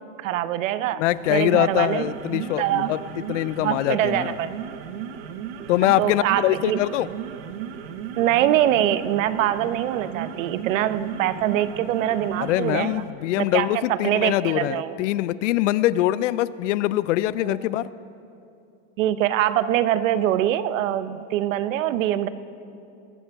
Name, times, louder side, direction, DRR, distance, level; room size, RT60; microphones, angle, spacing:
voice 1, 0.2-1.0 1.3-3.0 3.6-4.5 6.0-6.8 8.2-13.0 13.4-15.0 17.4-17.6 19.0-22.3, right 12 dB, 80° right, 14 dB, 0.8 m, -24 dB
voice 2, 1.0-3.0 3.3-4.3 5.7-7.1 12.4-17.9, left 14 dB, 70° left, 18 dB, 0.5 m, -23 dB
sound 1, 1.1-13.1, right 9 dB, 50° right, 0.9 m, -35 dB
21.0 x 14.5 x 3.5 m, 2.6 s
supercardioid pair, 175°, 38 cm